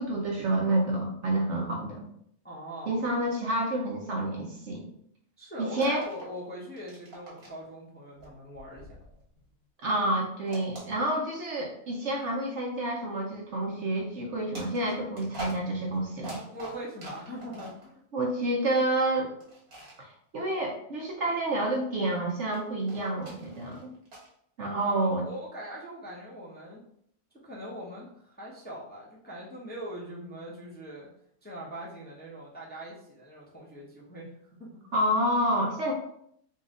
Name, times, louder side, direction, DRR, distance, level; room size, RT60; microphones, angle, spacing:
voice 1, 0.0-2.1 2.9-4.8 5.6-6.0 9.8-16.4 18.1-19.3 20.0-23.9 24.6-25.2 34.9-35.9, right 1 dB, 60° right, -1 dB, 1.0 m, -29 dB
voice 2, 2.4-3.1 5.4-8.9 16.5-18.0 24.8-26.8 27.4-31.1 31.4-34.3 34.6-34.8 35.9-36.0, equal, 10° left, -5 dB, 0.8 m, -41 dB
sound 1, 5.7-6.4 6.7-7.6 8.2-9.6 10.5-11.5 12.2-12.3 14.5-17.9 19.4-20.0 22.5-24.3, right 1 dB, 75° right, 1.8 m, -45 dB
4.1 x 2.5 x 3.7 m, 0.68 s
omnidirectional pair, 1.5 m